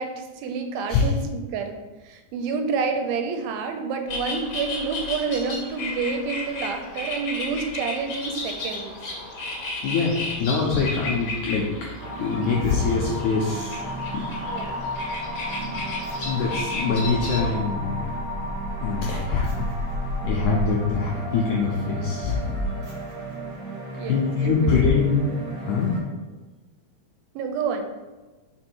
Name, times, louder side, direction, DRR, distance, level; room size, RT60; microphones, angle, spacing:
voice 1, 0.0-1.8 2.0-9.0 14.5-14.8 24.0-24.8 27.4-27.9, right 5 dB, 80° right, 5 dB, 2.4 m, -29 dB
sound 1, 4.1-17.5, left 2 dB, 50° left, 1.5 m, -34 dB
voice 2, 9.8-11.9 12.2-13.8 14.1-14.3 15.5-15.6 16.3-18.1 18.8-19.7 20.2-22.4 24.0-25.2 25.7-26.0, left 5 dB, 85° left, -2 dB, 1.7 m, -24 dB
sound 2, 12.0-26.0, equal, 35° right, 1.6 m, -33 dB
sound 3, 14.8-20.7, left 1 dB, 35° left, 1.1 m, -34 dB
5.2 x 4.7 x 4.5 m, 1.2 s
omnidirectional pair, 4.4 m